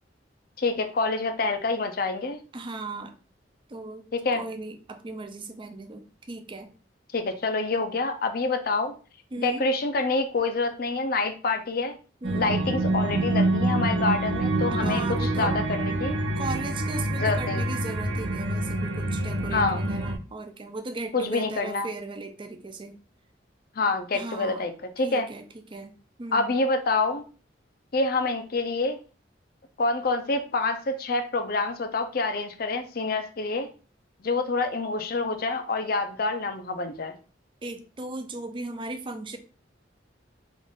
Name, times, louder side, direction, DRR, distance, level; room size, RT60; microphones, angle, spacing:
voice 1, 0.6-2.4 4.1-4.4 7.1-8.9 9.4-12.0 12.3-16.2 17.2-17.6 19.5-19.8 21.1-21.9 23.8-25.3 26.3-27.2 27.9-29.0 29.8-33.7 34.2-37.2, left 3 dB, 55° left, 8 dB, 0.6 m, -27 dB
voice 2, 2.5-3.1 3.7-6.7 9.3-9.7 12.2-12.6 14.7-15.5 16.4-23.0 24.1-24.7 25.0-25.4 25.7-25.9 26.2-26.5 37.6-39.4, right 2 dB, 25° right, 7 dB, 0.5 m, -37 dB
sound 1, 12.2-20.2, right 1 dB, 80° right, 0.7 m, -26 dB
3.8 x 2.5 x 3.6 m, 0.36 s
head